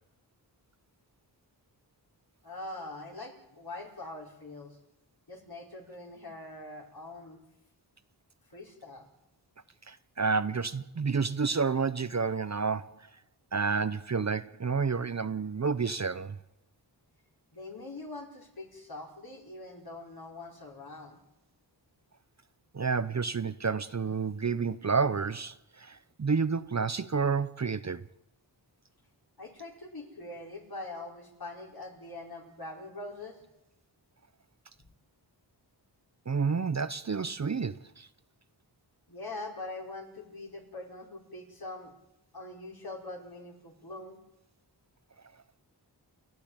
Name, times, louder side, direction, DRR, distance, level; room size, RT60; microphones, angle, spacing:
voice 1, 2.4-4.8 5.3-7.4 8.5-9.0 17.5-21.2 29.4-33.4 34.8-34.9 39.1-41.9 42.3-44.2, left 2 dB, 55° left, 5.1 m, -43 dB
voice 2, 9.9-13.1 13.5-16.4 22.7-28.1 36.3-38.1, right 5 dB, 40° right, 0.7 m, -30 dB
29.5 x 12.5 x 8.9 m
wide cardioid pair, 90°, 43 cm